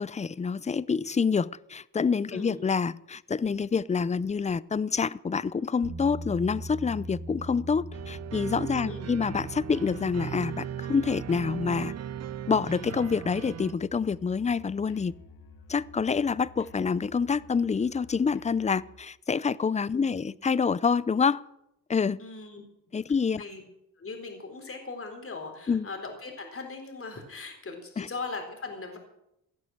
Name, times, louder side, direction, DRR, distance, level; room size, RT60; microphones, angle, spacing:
voice 1, 0.0-12.0 12.5-15.1 15.7-21.4 21.9-22.2 22.9-23.4 25.7-25.9 28.0-28.1, left 5 dB, 20° left, 0.5 m, -27 dB
voice 2, 2.3-2.6 8.7-9.1 19.9-20.3 22.2-22.6 23.4-23.6 24.0-29.0, left 4 dB, 35° left, 4.0 m, -39 dB
sound 1, 5.8-18.1, right 1 dB, 75° right, 2.6 m, -44 dB
sound 2, 7.9-13.7, right 10 dB, 45° right, 0.5 m, -37 dB
Musical instrument, 12.8-19.1, left 6 dB, 85° left, 1.7 m, -54 dB
17.0 x 11.0 x 7.6 m
cardioid pair, 100°, 36 cm